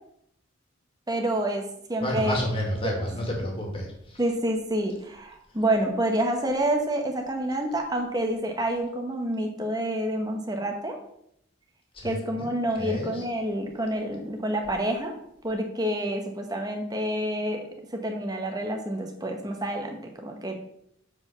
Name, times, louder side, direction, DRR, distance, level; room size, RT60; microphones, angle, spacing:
voice 1, 1.1-1.6 1.9-2.4 2.8-2.9 4.2-11.0 12.0-15.1 15.4-20.5, right 1 dB, 20° right, 3 dB, 1.2 m, -28 dB
voice 2, 2.0-4.2 11.9-13.2, equal, 25° left, 0 dB, 2.3 m, -31 dB
7.5 x 4.9 x 5.8 m, 0.74 s
head